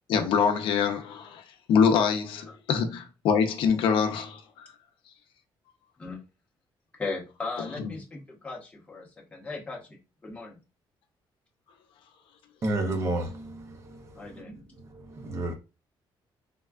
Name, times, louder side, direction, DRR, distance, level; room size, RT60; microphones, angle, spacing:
voice 1, 0.1-4.7 7.8-8.0, left 6 dB, 75° left, 0.5 m, -25 dB
voice 2, 6.9-10.6 14.1-14.5, left 3 dB, 15° left, 0.8 m, -38 dB
voice 3, 12.6-14.6 14.9-15.5, right 2 dB, 35° right, 0.5 m, -32 dB
3.5 x 2.2 x 2.3 m
cardioid pair, 160°, 9 cm